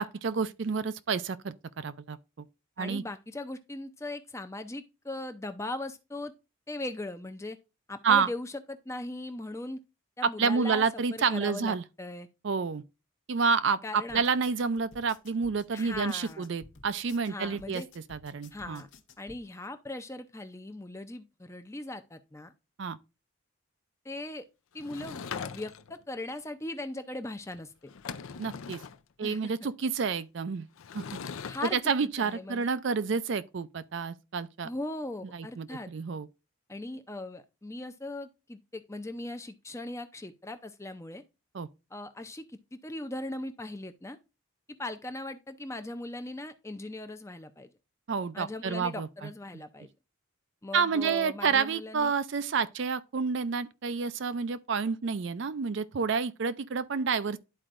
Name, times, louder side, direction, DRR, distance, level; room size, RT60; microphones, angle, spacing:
voice 1, 0.0-2.5 2.8-3.0 8.0-8.3 10.2-11.8 12.4-12.8 13.3-17.8 18.1-18.8 22.8-23.0 28.4-28.8 29.2-30.7 30.9-31.0 31.7-34.7 35.3-36.3 41.5-41.7 48.1-49.3 50.7-57.4, right 5 dB, 55° right, 0.4 m, -29 dB
voice 2, 2.8-6.3 6.7-7.6 7.9-9.8 10.2-10.8 11.1-12.3 13.8-14.2 15.7-16.5 17.3-17.9 18.5-18.9 19.2-22.5 24.0-24.4 24.7-27.9 29.2-29.5 31.5-32.7 34.6-35.9 36.7-41.2 41.9-44.2 44.8-47.7 48.3-49.9 50.6-52.1, left 2 dB, 15° left, 0.5 m, -39 dB
sound 1, 14.1-19.4, left 3 dB, 55° left, 0.9 m, -54 dB
Sliding door / Wood, 24.8-26.0 27.5-27.6 27.9-29.0 30.8-31.7, left 6 dB, 70° left, 0.5 m, -40 dB
11.5 x 4.4 x 2.5 m
head